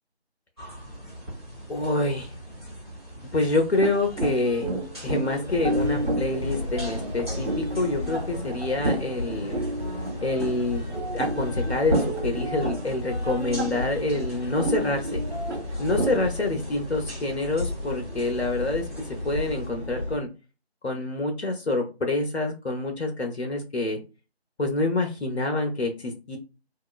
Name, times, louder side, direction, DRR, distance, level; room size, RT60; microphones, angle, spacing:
sound 1, 0.6-19.7, right 1 dB, 25° right, 1.2 m, -42 dB
voice 1, 1.7-2.3 3.3-4.7 5.0-9.6 10.2-10.8 11.1-15.2 15.8-20.3 20.8-24.0 24.6-26.4, left 2 dB, 75° left, 2 dB, 0.7 m, -27 dB
sound 2, 3.8-16.2, right 1 dB, 75° right, 1.3 m, -31 dB
sound 3, 5.4-20.2, left 1 dB, 25° left, 0.8 m, -34 dB
2.8 x 2.4 x 2.3 m, 0.31 s
figure-of-eight pair, 165°, 33 cm